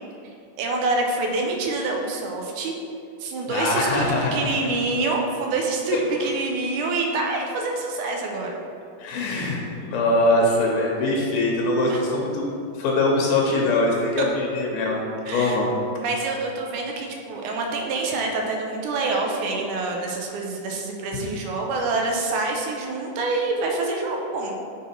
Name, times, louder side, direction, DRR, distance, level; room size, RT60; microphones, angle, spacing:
voice 1, 0.6-2.7 3.2-8.6 11.9-12.0 14.2-14.3 15.3-15.6 16.0-24.5, right 3 dB, 80° right, 1 dB, 2.0 m, -26 dB
voice 2, 3.5-4.4 9.0-9.6 9.9-12.5 12.8-15.0 15.3-15.7, left 2 dB, 85° left, -1 dB, 2.5 m, -22 dB
6.1 x 3.6 x 4.3 m, 2.6 s
omnidirectional pair, 3.8 m